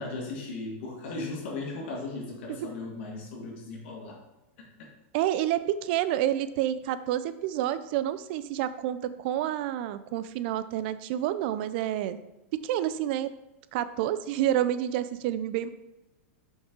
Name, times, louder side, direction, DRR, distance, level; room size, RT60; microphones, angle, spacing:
voice 1, 0.0-4.2 4.6-4.7, left 3 dB, 65° left, -1 dB, 1.7 m, -37 dB
voice 2, 5.1-12.2 12.5-13.3 13.7-15.7, right 12 dB, 50° right, 13 dB, 0.4 m, -29 dB
5.5 x 5.4 x 3.7 m, 0.98 s
supercardioid pair, 150°, 7 cm